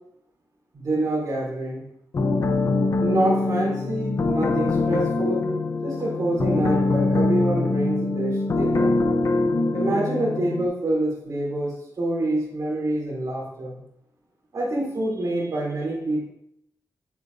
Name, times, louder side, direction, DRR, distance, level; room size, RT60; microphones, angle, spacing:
voice 1, 0.7-1.8 3.0-5.5 5.8-9.0 9.7-13.8 14.5-16.3, right 1 dB, 60° right, -4 dB, 3.3 m, -26 dB
sound 1, 2.1-10.6, left 3 dB, 50° left, 0.8 m, -23 dB
9.7 x 8.1 x 2.7 m, 0.77 s
wide cardioid pair, 155°, 7 cm